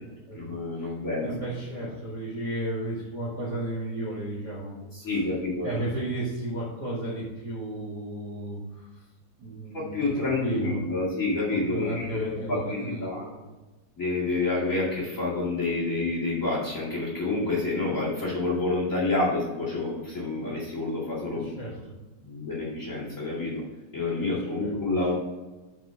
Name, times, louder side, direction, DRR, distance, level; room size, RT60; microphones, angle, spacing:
voice 1, 0.3-1.3 1.8-1.9 4.9-5.7 9.7-13.3 14.0-21.5 22.2-23.6 23.9-25.1, left 2 dB, 25° left, -6 dB, 1.7 m, -28 dB
voice 2, 1.2-4.8 5.6-9.0 9.4-10.8 11.7-13.4 21.4-21.9 24.6-24.7, right 1 dB, 80° right, -6 dB, 0.9 m, -33 dB
7.5 x 6.1 x 4.6 m, 1.1 s
omnidirectional pair, 4.9 m